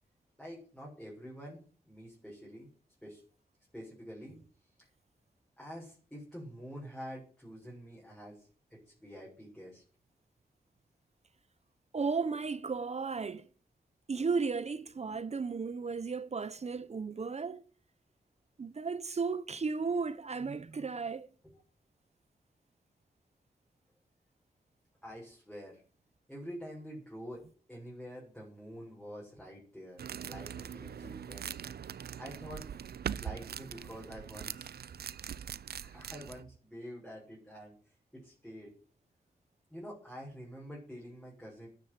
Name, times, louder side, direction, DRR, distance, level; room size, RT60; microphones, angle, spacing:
voice 1, 0.4-1.6 1.9-2.7 3.0-3.2 3.7-4.4 4.8-4.9 5.6-9.8 21.4-21.5 25.0-25.8 26.3-27.4 27.7-31.6 31.8-32.8 33.0-35.0 35.6-38.7 39.7-41.7, equal, 5° left, 6.9 m, -47 dB
voice 2, 11.9-13.5 14.1-17.6 18.6-21.3, right 4 dB, 40° right, 0.9 m, -34 dB
sound 1, 30.0-36.4, right 8 dB, 75° right, 0.7 m, -42 dB
12.5 x 10.0 x 8.3 m
wide cardioid pair, 100°, 16 cm